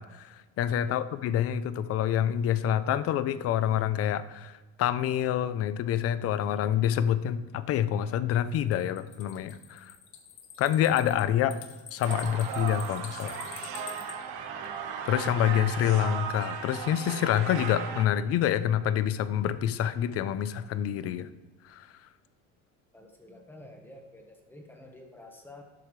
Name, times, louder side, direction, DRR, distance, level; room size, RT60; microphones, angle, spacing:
voice 1, 0.0-4.5 4.8-9.9 10.6-11.6 11.9-13.4 15.0-21.3 21.7-21.9, left 10 dB, 45° left, 14 dB, 0.6 m, -27 dB
sound 1, 8.6-14.1, left 9 dB, 60° left, 1.4 m, -46 dB
sound 2, 12.0-18.1, right 7 dB, 70° right, 1.4 m, -36 dB
voice 2, 22.9-25.6, left 1 dB, 5° left, 2 dB, 1.3 m, -50 dB
11.5 x 11.5 x 3.2 m, 1.2 s
cardioid pair, 155°, 33 cm